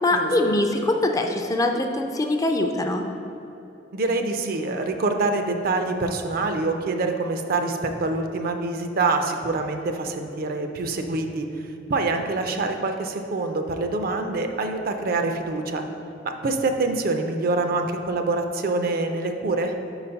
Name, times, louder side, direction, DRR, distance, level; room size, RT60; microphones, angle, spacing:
voice 1, 0.0-3.0, left 1 dB, 20° left, 4 dB, 0.3 m, -23 dB
voice 2, 3.9-11.5 11.9-15.8 16.2-19.7, right 3 dB, 55° right, 5 dB, 0.5 m, -25 dB
5.7 x 4.0 x 5.6 m, 2.9 s
head